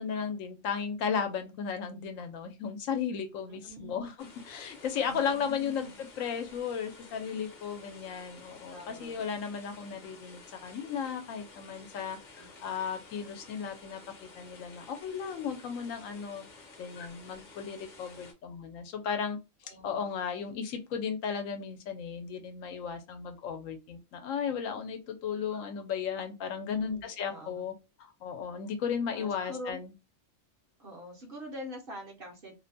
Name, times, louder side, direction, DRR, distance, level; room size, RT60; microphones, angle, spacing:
voice 1, 0.0-5.9 6.2-16.5 16.8-19.4 19.7-27.7 28.0-29.9, left 7 dB, 80° left, 1.0 m, -35 dB
voice 2, 3.5-4.1 5.0-6.0 8.7-9.3 12.3-12.5 19.6-20.1 26.6-27.7 29.1-29.8 30.8-32.5, equal, 50° right, 0.8 m, -45 dB
sound 1, 4.2-18.3, left 3 dB, 45° left, 0.7 m, -52 dB
2.6 x 2.1 x 2.6 m
omnidirectional pair, 1.4 m